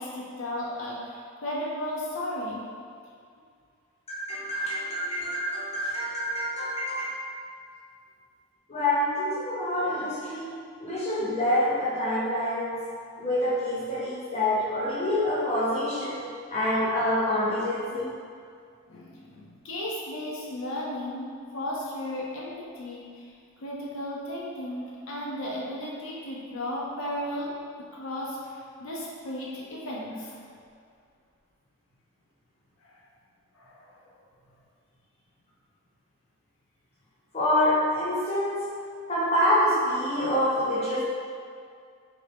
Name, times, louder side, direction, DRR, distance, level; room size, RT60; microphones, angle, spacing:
voice 1, 0.0-2.7 18.9-23.3 23.6-27.5 27.9-30.5 32.8-33.0 33.5-34.0, left 1 dB, 70° left, -5 dB, 0.6 m, -35 dB
voice 2, 4.1-7.2 8.7-10.5 10.8-12.8 13.2-16.2 16.5-18.1 37.3-38.6 39.1-41.0, left 1 dB, 30° left, -7 dB, 0.7 m, -26 dB
3.3 x 2.6 x 3.3 m, 2.2 s
head